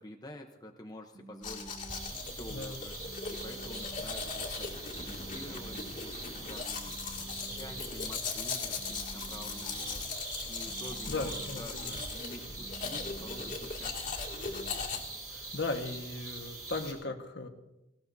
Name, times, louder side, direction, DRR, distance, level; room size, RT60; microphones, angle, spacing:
voice 1, 0.0-10.1 10.5-14.2, left 1 dB, 20° left, 3 dB, 0.9 m, -49 dB
sound 1, 1.1-14.7, right 2 dB, 60° right, 1.6 m, -52 dB
Domestic sounds home sounds, 1.4-15.0, left 4 dB, 40° left, 2.3 m, -39 dB
sound 2, 1.9-16.9, right 2 dB, 15° right, 5.7 m, -44 dB
voice 2, 11.1-11.9 15.3-17.5, left 3 dB, 60° left, 4 dB, 1.5 m, -37 dB
19.0 x 17.5 x 2.7 m, 0.95 s
head